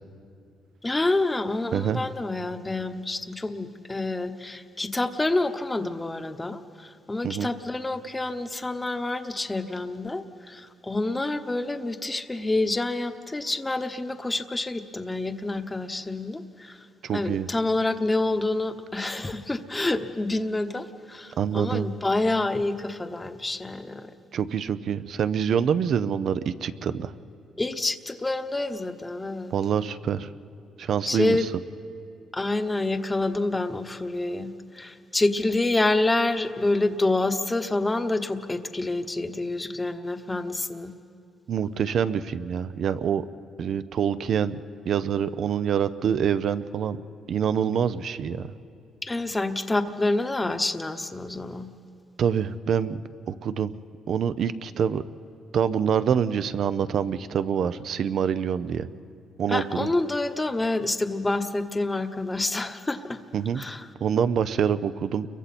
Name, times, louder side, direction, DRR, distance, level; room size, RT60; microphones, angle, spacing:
voice 1, 0.8-16.8 17.1-24.1 27.6-29.5 31.0-31.5 32.3-40.9 49.0-51.7 59.5-63.2 63.5-63.9, left 2 dB, 15° left, 8 dB, 1.1 m, -27 dB
voice 2, 1.7-2.0 7.2-7.5 17.0-17.5 21.4-21.9 24.3-27.1 29.5-30.3 30.8-31.4 41.5-43.3 43.6-44.6 44.8-47.0 47.3-48.5 52.2-53.0 53.3-53.7 54.1-55.0 55.5-58.9 59.4-59.9 63.3-63.6 64.0-65.3, right 8 dB, 65° right, 13 dB, 0.7 m, -26 dB
29.5 x 23.0 x 4.3 m, 2.5 s
cardioid pair, 90°, 0 cm